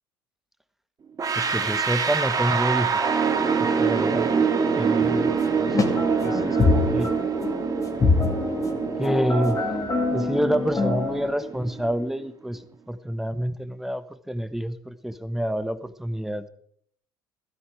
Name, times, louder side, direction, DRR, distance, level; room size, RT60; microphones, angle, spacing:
sound 1, 1.2-12.1, right 6 dB, 30° right, 1.8 m, -25 dB
voice 1, 1.3-3.2 3.6-4.3 4.7-7.1 9.0-9.6 10.1-16.5, equal, 5° right, 13 dB, 1.2 m, -28 dB
sound 2, 5.0-11.3, left 3 dB, 30° left, 2.2 m, -25 dB
15.5 x 12.5 x 4.9 m, 0.63 s
figure-of-eight pair, 60°, 11 cm